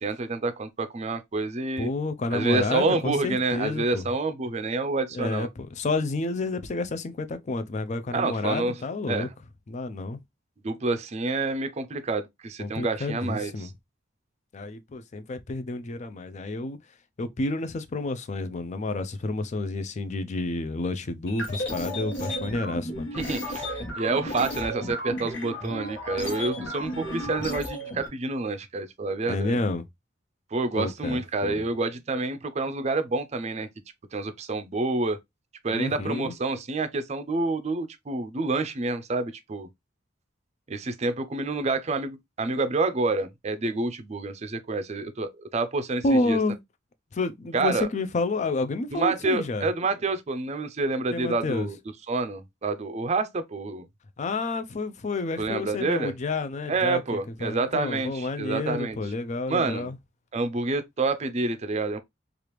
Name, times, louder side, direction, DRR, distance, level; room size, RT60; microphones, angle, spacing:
voice 1, 0.0-1.9 2.3-5.5 8.1-8.7 9.1-9.3 10.6-13.7 23.2-29.6 30.5-33.7 34.1-35.2 35.6-39.7 40.7-46.4 47.5-47.9 48.9-51.8 52.1-53.9 55.4-56.1 56.7-59.0 59.5-59.9 60.3-62.0, right 3 dB, 35° right, 0.5 m, -28 dB
voice 2, 1.8-4.0 5.1-9.3 9.7-10.2 12.6-13.7 14.5-16.8 17.2-23.1 29.3-29.8 30.7-31.7 35.7-36.3 46.0-46.6 47.1-49.7 51.1-51.7 54.2-60.0, left 2 dB, 40° left, 0.4 m, -30 dB
sound 1, 21.3-28.1, equal, 65° left, 1.2 m, -33 dB
3.3 x 2.4 x 3.0 m
head